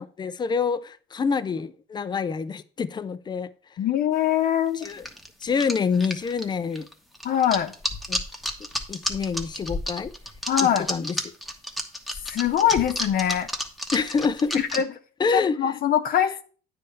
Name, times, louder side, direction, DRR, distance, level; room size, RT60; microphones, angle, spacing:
voice 1, 0.0-3.5 4.7-5.1 5.4-6.9 8.1-8.2 8.9-10.1 10.6-11.2 13.9-14.7 15.2-15.8, left 5 dB, 25° left, 0.5 m, -27 dB
voice 2, 3.8-4.9 7.2-7.7 10.5-10.9 12.3-13.5 14.7-14.9 15.3-16.4, left 10 dB, 60° left, 0.8 m, -23 dB
sound 1, 4.8-14.8, left 1 dB, ahead, 1.0 m, -31 dB
9.2 x 3.4 x 6.5 m
cardioid pair, 110°, 17 cm